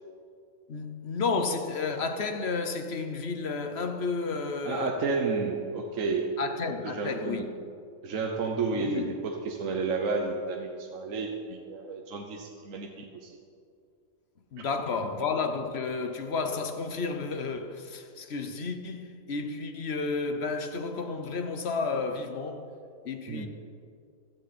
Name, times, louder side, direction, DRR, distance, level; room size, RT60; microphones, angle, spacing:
voice 1, 0.7-5.0 6.4-7.5 8.7-9.1 14.5-22.7 23.0-23.5, left 4 dB, 50° left, 1.0 m, -32 dB
voice 2, 4.6-6.4 6.8-7.5 8.0-13.4 23.3-23.5, right 4 dB, 60° right, 1.3 m, -31 dB
16.0 x 13.0 x 4.2 m
omnidirectional pair, 1.6 m